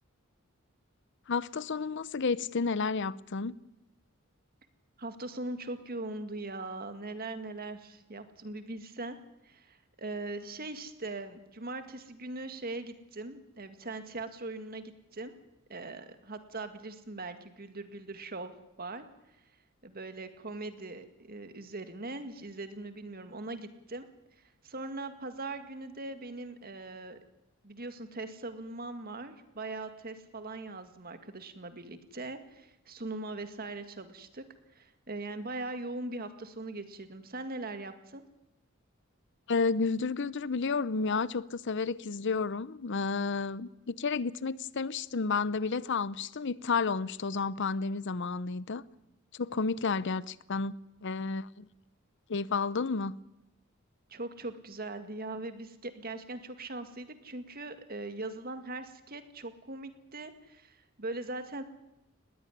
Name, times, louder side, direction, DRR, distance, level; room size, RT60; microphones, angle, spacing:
voice 1, 1.3-3.6 39.5-48.8 49.3-51.7 52.3-53.2, left 4 dB, 60° left, 0.7 m, -31 dB
voice 2, 5.0-9.2 9.4-15.4 15.7-19.1 19.8-24.1 24.6-27.2 27.6-34.4 34.8-38.2 54.1-61.6, right 2 dB, 45° right, 2.0 m, -40 dB
20.5 x 15.5 x 10.0 m
head